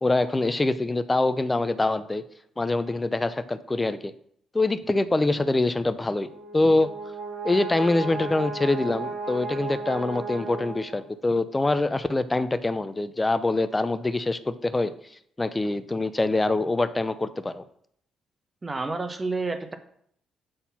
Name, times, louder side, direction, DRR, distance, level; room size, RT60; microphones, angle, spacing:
voice 1, 0.0-2.2 2.6-4.1 4.5-6.3 6.5-6.9 7.4-14.9 15.4-17.6, left 2 dB, 20° left, 13 dB, 0.7 m, -24 dB
Brass instrument, 6.2-11.2, right 3 dB, 80° right, 3.1 m, -35 dB
voice 2, 18.6-19.8, right 3 dB, 30° right, 8 dB, 1.2 m, -29 dB
7.9 x 4.1 x 5.7 m, 0.66 s
hypercardioid pair, 45°, 0 cm